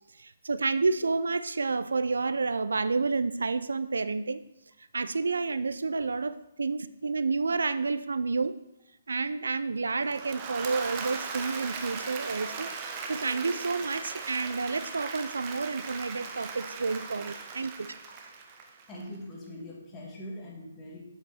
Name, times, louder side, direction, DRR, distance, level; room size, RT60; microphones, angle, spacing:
voice 1, 0.2-4.4 4.9-8.6 9.1-12.7 13.1-17.9, right 4 dB, 75° right, 15 dB, 0.4 m, -30 dB
Applause / Crowd, 9.9-19.1, right 5 dB, 30° right, 1.1 m, -38 dB
voice 2, 18.9-21.0, left 1 dB, 20° left, -3 dB, 2.4 m, -42 dB
8.0 x 7.6 x 4.3 m, 0.85 s
figure-of-eight pair, 140°, 0 cm